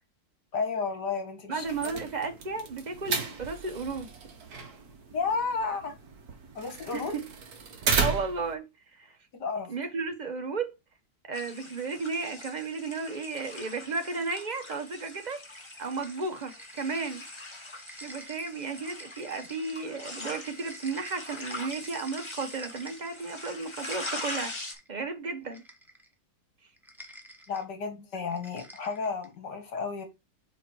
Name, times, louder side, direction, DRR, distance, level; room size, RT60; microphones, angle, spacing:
voice 1, 0.5-2.0 5.1-5.9 6.5-7.1 9.4-9.7 27.5-30.1, left 5 dB, 65° left, 2.2 m, -32 dB
voice 2, 1.5-4.1 6.9-7.3 8.0-8.6 9.0-9.1 9.7-10.7 11.2-15.4 15.8-17.2 18.0-25.6, right 4 dB, 35° right, 0.7 m, -34 dB
sound 1, 1.6-8.5, right 5 dB, 60° right, 1.5 m, -34 dB
sound 2, 11.3-24.7, left 2 dB, 20° left, 1.2 m, -42 dB
sound 3, 16.0-17.3 17.6-23.2 23.6-24.9 25.5-26.1 26.8-27.7 28.3-29.4, right 1 dB, ahead, 0.4 m, -50 dB
5.2 x 4.3 x 4.5 m
omnidirectional pair, 2.0 m